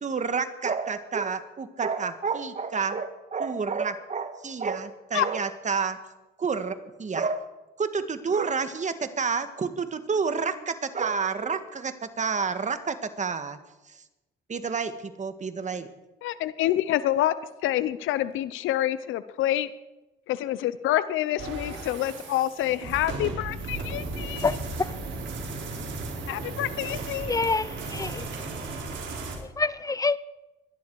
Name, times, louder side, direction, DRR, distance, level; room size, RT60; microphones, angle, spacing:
voice 1, 0.0-6.0 6.4-7.5 7.8-13.6 14.5-15.9, right 5 dB, 35° right, 1.6 m, -29 dB
voice 2, 16.2-17.3 17.6-19.7 20.3-24.6 26.3-27.3, left 13 dB, 90° left, 0.8 m, -27 dB
sound 1, 21.4-29.4, right 3 dB, 70° right, 4.2 m, -35 dB
voice 3, 27.3-28.3 29.6-30.2, left 3 dB, 15° left, 0.6 m, -26 dB
24.0 x 10.5 x 4.8 m
cardioid pair, 90°, 20 cm